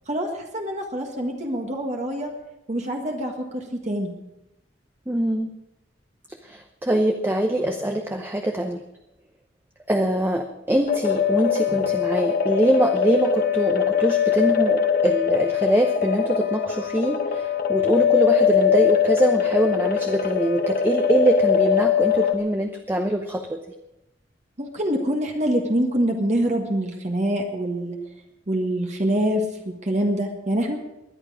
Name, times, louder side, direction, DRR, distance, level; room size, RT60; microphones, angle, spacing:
voice 1, 0.1-2.3 2.7-4.1 24.6-28.0 28.5-30.8, right 1 dB, 35° right, 1 dB, 1.7 m, -25 dB
voice 2, 5.1-5.5 6.4-8.8 9.9-23.6, right 1 dB, 10° right, 4 dB, 0.8 m, -23 dB
sound 1, 10.9-22.3, left 7 dB, 50° left, 1.2 m, -22 dB
20.0 x 11.0 x 4.9 m, 0.91 s
head